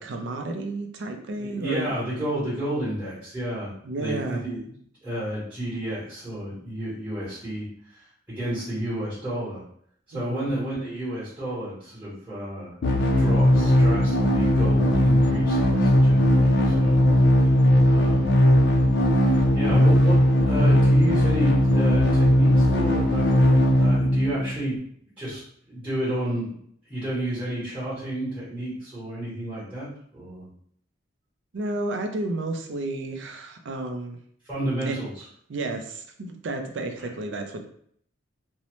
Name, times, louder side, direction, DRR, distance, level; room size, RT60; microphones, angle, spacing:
voice 1, 0.0-1.9 3.8-4.4 10.1-10.5 31.5-34.2 34.9-35.0 35.5-37.7, right 2 dB, 65° right, 4 dB, 0.4 m, -32 dB
voice 2, 1.2-4.6 5.0-8.0 8.3-9.6 10.1-12.8 13.2-17.1 17.3-17.5 17.8-18.4 19.5-23.5 23.8-24.8 25.2-25.4 25.7-26.6 26.9-30.5 34.5-35.2 37.0-37.1, right 1 dB, 10° right, -10 dB, 1.0 m, -31 dB
sound 1, 12.8-24.7, left 1 dB, 55° left, 0.4 m, -19 dB
2.7 x 2.0 x 3.0 m, 0.64 s
head